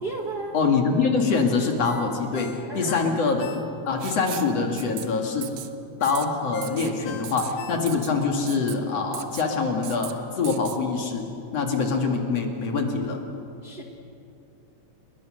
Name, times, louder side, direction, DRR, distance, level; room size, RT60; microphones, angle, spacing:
voice 1, 0.0-0.5 2.7-3.2 6.7-7.0 13.6-13.8, right 3 dB, 90° right, 1 dB, 0.8 m, -34 dB
voice 2, 0.5-5.5 6.0-11.3 11.5-13.2, left 4 dB, 45° left, 2 dB, 2.6 m, -24 dB
Ringtone, 1.8-4.1 4.5-4.6 6.0-8.2 8.6-8.7, left 7 dB, 70° left, 3.0 m, -42 dB
Writing, 4.0-4.5 4.8-5.0 5.4-5.7 6.0-6.3 6.6-6.9 7.2-7.5 7.9-8.1 8.5-8.8 9.1-9.5 9.8-10.1 10.4-10.8, right 13 dB, 70° right, 2.1 m, -37 dB
29.5 x 21.0 x 6.5 m, 2.6 s
omnidirectional pair, 4.5 m